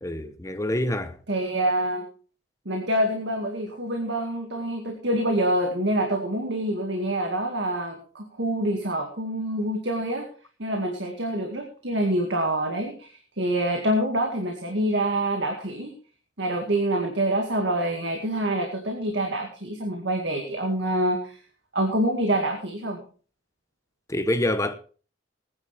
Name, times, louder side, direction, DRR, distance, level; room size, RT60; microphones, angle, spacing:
voice 1, 0.0-1.2 24.1-24.7, left 1 dB, 15° left, 0.9 m, -26 dB
voice 2, 1.3-2.0 2.7-10.3 10.6-15.9 16.4-21.4 21.7-23.0, right 1 dB, 65° right, 2.1 m, -26 dB
19.5 x 10.0 x 3.5 m
head